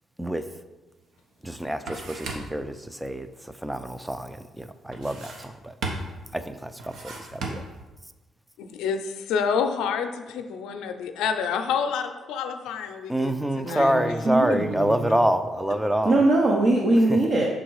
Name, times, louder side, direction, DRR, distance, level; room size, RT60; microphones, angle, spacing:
sound 1, 1.0-1.1 1.4-2.7 4.9-5.6 5.8-6.3 6.8-7.9, right 3 dB, 70° right, 1.0 m, -35 dB
voice 1, 1.4-5.8 6.3-7.6 13.1-16.2 16.9-17.2, right 1 dB, 5° right, 10 dB, 0.4 m, -27 dB
voice 2, 8.6-14.1, left 6 dB, 90° left, 6 dB, 0.5 m, -28 dB
voice 3, 13.7-14.0 14.3-14.9 16.1-17.5, right 2 dB, 50° right, -1 dB, 0.8 m, -21 dB
6.1 x 3.7 x 4.7 m, 1.2 s
cardioid pair, 90°, 0 cm